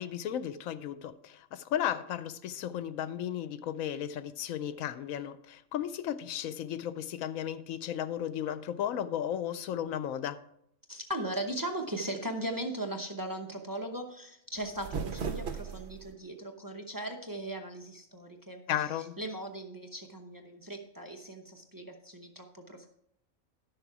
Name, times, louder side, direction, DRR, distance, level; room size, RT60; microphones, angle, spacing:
voice 1, 0.0-10.4 18.7-19.2, left 10 dB, 85° left, 1.0 m, -34 dB
voice 2, 10.9-18.6 18.9-22.9, right 1 dB, 20° right, 0.7 m, -38 dB
sound 1, 14.5-16.1, right 5 dB, 55° right, 1.1 m, -37 dB
11.5 x 6.7 x 4.7 m
omnidirectional pair, 1.4 m